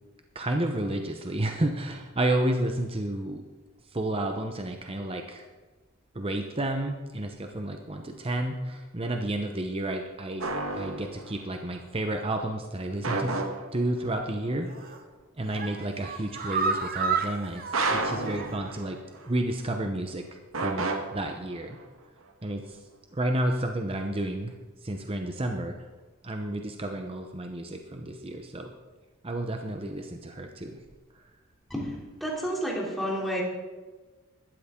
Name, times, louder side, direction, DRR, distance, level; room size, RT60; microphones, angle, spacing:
voice 1, 0.3-3.4 3.9-5.4 6.1-13.3 13.7-14.7 15.4-17.6 17.9-19.0 19.2-21.8 22.4-22.8 23.1-24.5 24.8-25.8 26.2-28.7 29.2-30.8, right 1 dB, 25° right, 4 dB, 0.8 m, -31 dB
sound 1, 10.4-11.5 13.0-14.1 17.7-19.3 20.5-21.8, right 3 dB, 70° right, 1.6 m, -31 dB
sound 2, 14.7-15.0 15.4-18.8 19.1-19.2 19.6-19.7, right 5 dB, 45° right, 1.1 m, -32 dB
voice 2, 31.7-33.4, equal, ahead, -3 dB, 3.1 m, -31 dB
16.0 x 12.5 x 3.8 m, 1.3 s
head